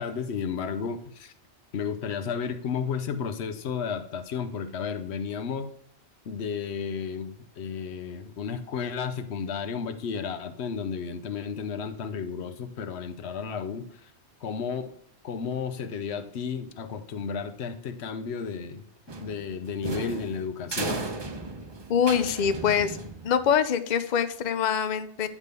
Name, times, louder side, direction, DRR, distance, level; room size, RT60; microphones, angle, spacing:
voice 1, 0.0-1.3 1.7-5.7 6.3-14.1 14.4-14.9 15.2-18.8 19.2-21.0, left 6 dB, 70° left, 11 dB, 1.0 m, -33 dB
sound 1, 19.1-23.5, right 2 dB, 25° right, 0.7 m, -35 dB
voice 2, 21.9-23.0 23.2-25.3, left 8 dB, 50° left, 11 dB, 0.6 m, -24 dB
9.8 x 3.6 x 6.6 m, 0.62 s
omnidirectional pair, 1.1 m